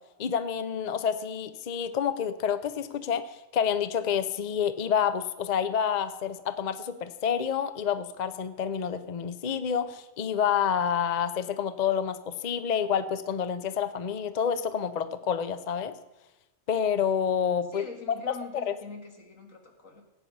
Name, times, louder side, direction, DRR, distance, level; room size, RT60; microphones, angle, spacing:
voice 1, 0.2-15.9 16.7-17.9 18.7-18.8, left 8 dB, 45° left, 11 dB, 0.6 m, -28 dB
voice 2, 17.7-20.0, left 4 dB, 80° left, 1 dB, 2.3 m, -44 dB
16.5 x 9.2 x 5.4 m, 1.0 s
omnidirectional pair, 1.3 m